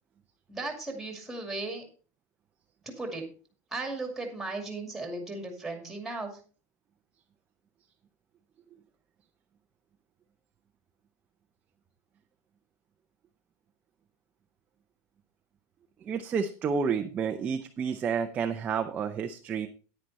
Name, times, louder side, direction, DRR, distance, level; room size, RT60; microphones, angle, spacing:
voice 1, 0.5-1.8 3.0-3.2 3.7-6.3, right 2 dB, 5° right, 3 dB, 2.4 m, -36 dB
voice 2, 16.0-19.7, right 6 dB, 20° right, 5 dB, 0.6 m, -30 dB
10.0 x 9.6 x 4.1 m, 0.38 s
supercardioid pair, 170°, 9 cm